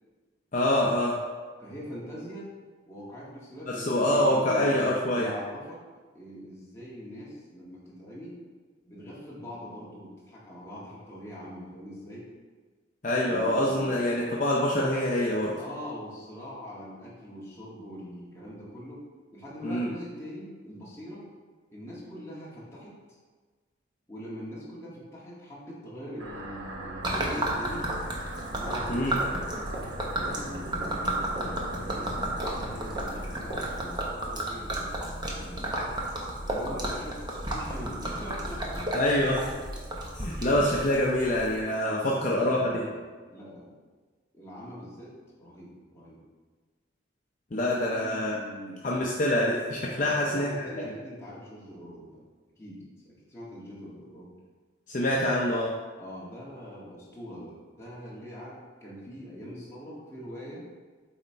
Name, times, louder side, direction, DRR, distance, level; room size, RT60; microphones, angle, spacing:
voice 1, 0.5-1.2 3.7-5.3 13.0-15.5 19.6-19.9 28.9-29.2 38.9-39.5 40.2-42.8 47.5-48.4 48.8-50.5 54.9-55.7, left 1 dB, 40° left, -3 dB, 0.6 m, -25 dB
voice 2, 1.6-2.5 2.9-5.8 6.1-8.4 8.8-12.3 13.2-13.9 15.6-19.1 19.3-21.3 21.7-23.2 24.1-27.9 28.5-29.2 29.9-35.9 36.4-38.9 40.3-40.7 41.8-43.8 44.3-46.2 47.8-48.9 50.0-52.2 52.6-54.3 56.0-60.6, equal, 15° left, -7 dB, 1.6 m, -42 dB
sound 1, 26.2-33.9, right 1 dB, 80° right, 0.9 m, -41 dB
Gurgling / Liquid, 27.0-41.6, right 1 dB, 20° right, 0.8 m, -33 dB
sound 2, 28.3-33.8, right 1 dB, 60° right, 1.5 m, -41 dB
7.9 x 3.4 x 4.4 m, 1.4 s
head